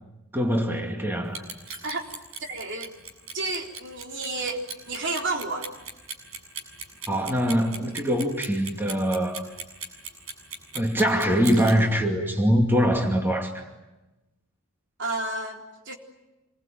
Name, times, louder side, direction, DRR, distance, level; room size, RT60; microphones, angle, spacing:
voice 1, 0.3-1.4 7.1-9.4 10.7-13.6, equal, 10° right, 2 dB, 2.5 m, -23 dB
Clock, 1.2-11.7, right 5 dB, 75° right, 7.5 m, -37 dB
voice 2, 2.4-2.9 3.3-5.7 15.0-15.9, right 2 dB, 60° right, 1 dB, 3.9 m, -31 dB
27.5 x 22.5 x 9.2 m, 1.0 s
head